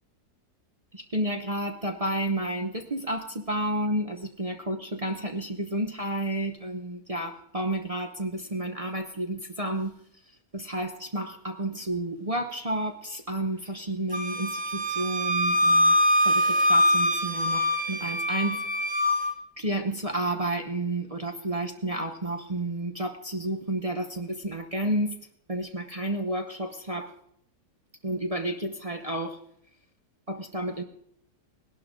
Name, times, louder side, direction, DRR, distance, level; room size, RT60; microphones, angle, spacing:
voice 1, 0.9-10.0 10.5-15.9 16.2-18.6 19.6-25.2 25.5-27.1 28.0-29.4 30.3-30.8, right 1 dB, 30° right, 4 dB, 0.6 m, -31 dB
Wind instrument woodwind instrument, 14.1-19.3, left 1 dB, 5° right, 0.9 m, -23 dB
19.0 x 11.5 x 3.7 m, 0.70 s
omnidirectional pair, 1.8 m